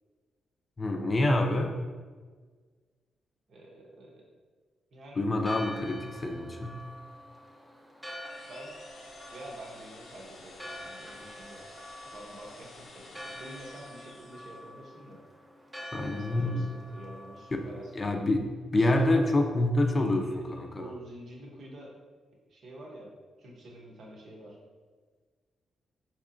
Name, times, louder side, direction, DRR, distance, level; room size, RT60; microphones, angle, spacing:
voice 1, 0.8-1.7 5.2-6.8 15.9-16.7 17.9-18.5 18.7-20.9, left 1 dB, 35° left, 4 dB, 0.5 m, -27 dB
voice 2, 3.5-4.3 4.9-5.3 8.5-8.8 9.3-11.6 12.1-15.2 15.9-18.1 18.8-19.3 20.3-21.9 22.5-23.1 23.4-24.6, right 1 dB, 65° right, -2 dB, 0.8 m, -47 dB
Church bell, 5.3-18.0, equal, 10° right, 0.6 m, -47 dB
sound 1, 8.2-14.7, left 3 dB, 80° left, 0.6 m, -51 dB
4.4 x 2.8 x 2.5 m, 1.5 s
cardioid pair, 80°, 0 cm